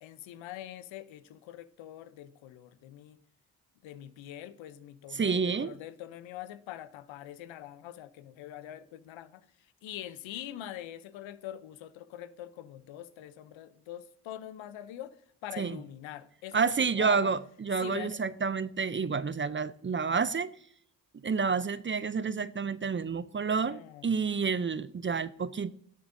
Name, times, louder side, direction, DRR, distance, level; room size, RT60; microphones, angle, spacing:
voice 1, 0.0-3.2 3.8-9.4 9.8-17.3 17.8-18.2 23.7-24.3, left 12 dB, 80° left, 0.7 m, -44 dB
voice 2, 5.1-5.8 15.6-15.8 16.5-20.5 21.2-25.7, right 5 dB, 25° right, 0.5 m, -29 dB
17.5 x 6.8 x 2.6 m
supercardioid pair, 40°, 46 cm